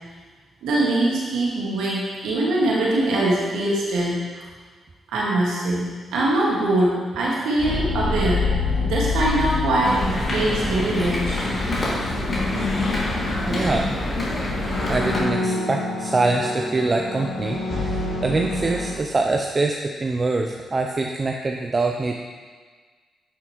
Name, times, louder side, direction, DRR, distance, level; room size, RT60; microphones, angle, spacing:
voice 1, 0.6-4.1 5.1-8.4 8.8-10.0 10.3-11.4, right 1 dB, 80° right, -4 dB, 1.8 m, -22 dB
sound 1, 7.6-12.4 12.7-12.9 14.4-19.0, left 3 dB, 65° left, 2.4 m, -27 dB
sound 2, 9.8-15.2, left 2 dB, 40° left, 2.5 m, -25 dB
voice 2, 13.4-14.0 14.9-22.1, right 3 dB, 40° right, 2 dB, 0.6 m, -24 dB
9.8 x 5.9 x 3.1 m, 1.5 s
supercardioid pair, 50°, 0 cm